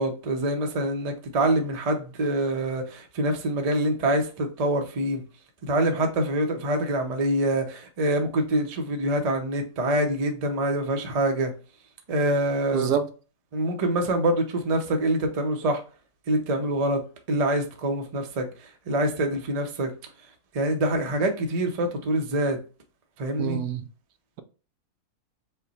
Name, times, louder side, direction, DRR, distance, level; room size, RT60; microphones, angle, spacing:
voice 1, 0.0-5.2 5.6-11.5 12.1-12.9 13.5-15.8 16.3-17.0 17.3-19.9 20.5-22.6 23.2-23.6, right 1 dB, 35° right, 0.6 m, -25 dB
voice 2, 12.7-13.1 23.4-23.8, right 8 dB, 80° right, 1.2 m, -26 dB
5.5 x 2.2 x 4.0 m
omnidirectional pair, 1.7 m